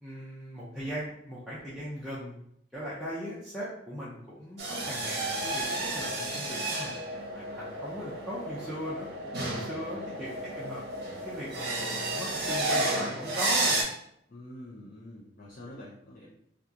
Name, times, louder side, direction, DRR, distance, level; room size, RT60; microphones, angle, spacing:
voice 1, 0.0-2.3 2.7-7.0 7.3-9.1 9.4-13.8, equal, ahead, -10 dB, 0.6 m, -39 dB
sound 1, 4.6-13.8, right 2 dB, 55° right, 0.7 m, -32 dB
voice 2, 9.5-10.2 14.3-16.3, left 1 dB, 45° left, -6 dB, 0.5 m, -47 dB
2.9 x 2.3 x 3.7 m, 0.73 s
head